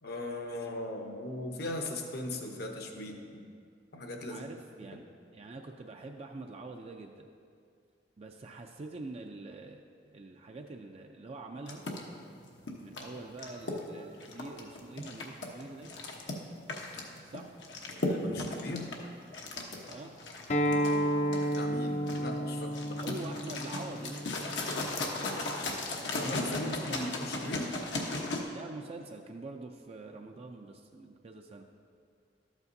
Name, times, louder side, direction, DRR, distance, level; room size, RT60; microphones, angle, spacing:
voice 1, 0.0-3.5 3.9-4.5 18.0-18.9 20.6-23.0 26.0-27.7, left 1 dB, 60° left, 3 dB, 0.9 m, -39 dB
voice 2, 4.3-5.0 5.3-7.3 8.2-11.8 12.8-15.9 17.3-17.5 19.9-20.2 23.0-24.2 26.5-27.1 28.5-31.7, right 3 dB, 35° right, 3 dB, 0.4 m, -45 dB
sound 1, 11.6-28.4, left 2 dB, 85° left, 1.0 m, -37 dB
Acoustic guitar, 20.5-25.7, equal, 40° left, 0.5 m, -32 dB
13.0 x 8.2 x 2.7 m, 2.3 s
head